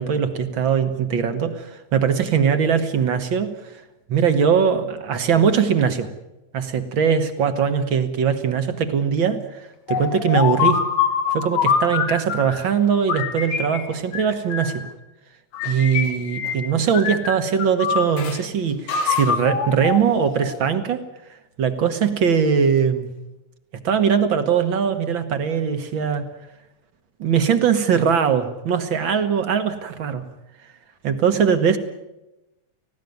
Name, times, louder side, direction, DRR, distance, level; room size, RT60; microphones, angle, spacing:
voice 1, 0.0-3.8 4.1-6.1 6.5-10.8 11.3-14.8 15.6-21.0 21.3-23.1 23.8-26.3 27.2-30.2 31.0-31.8, right 7 dB, 50° right, 9 dB, 1.7 m, -21 dB
sound 1, 9.9-12.6 13.1-14.9 15.5-16.7 16.9-18.4 18.9-20.7, left 6 dB, 75° left, 3.2 m, -24 dB
18.5 x 16.0 x 9.4 m, 0.97 s
omnidirectional pair, 3.3 m